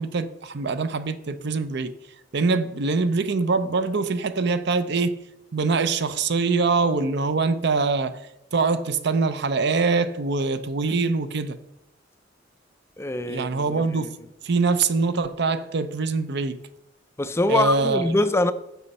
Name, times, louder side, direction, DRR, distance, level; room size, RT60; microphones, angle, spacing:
voice 1, 0.0-1.9 2.3-5.2 5.5-8.2 8.5-11.6 13.3-14.2 14.4-16.6 17.5-18.0, right 4 dB, 60° right, 0.6 m, -23 dB
voice 2, 13.0-14.1 17.2-18.5, left 2 dB, 15° left, 0.4 m, -24 dB
10.5 x 6.8 x 4.2 m
head